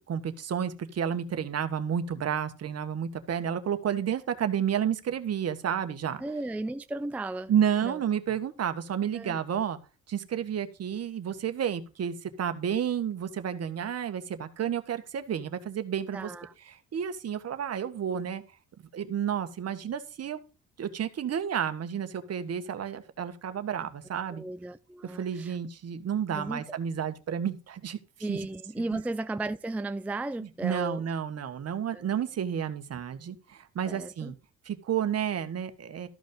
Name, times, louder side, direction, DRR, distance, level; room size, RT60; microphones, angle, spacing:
voice 1, 0.1-6.2 7.5-9.8 10.1-16.3 16.7-18.4 18.9-20.4 20.8-24.4 25.0-28.0 28.3-28.4 30.4-34.3 34.6-36.1, right 8 dB, 55° right, 1.5 m, -31 dB
voice 2, 6.2-7.5 7.8-8.0 9.1-9.4 16.1-16.5 24.3-25.6 26.3-26.8 28.2-31.0 31.9-32.1 33.9-34.3, right 2 dB, 5° right, 0.4 m, -35 dB
13.5 x 5.2 x 5.4 m
cardioid pair, 90°, 30 cm